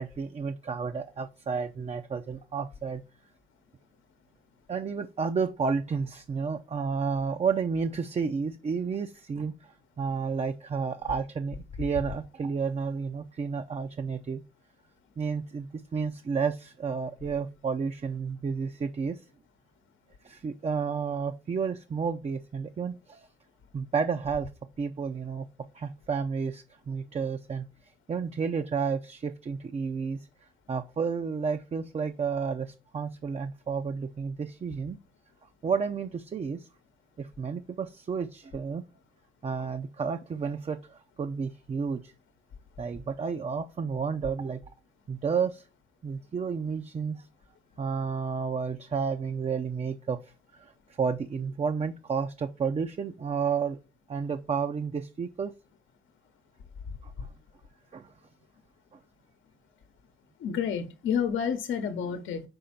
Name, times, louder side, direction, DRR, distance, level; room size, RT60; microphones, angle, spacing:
voice 1, 0.0-3.0 4.7-14.4 15.2-19.2 20.2-23.3 23.7-24.5 24.8-25.5 25.7-27.7 28.1-30.3 30.7-35.0 35.6-36.7 37.2-38.8 39.4-42.1 42.8-44.6 45.1-45.7 46.0-47.3 47.8-50.7 51.0-53.8 54.1-55.5 57.0-57.3 57.9-58.1, right 5 dB, 30° right, 0.5 m, -31 dB
voice 2, 60.4-62.4, left 7 dB, 75° left, 0.9 m, -29 dB
5.3 x 4.3 x 5.7 m
cardioid pair, 90°, 20 cm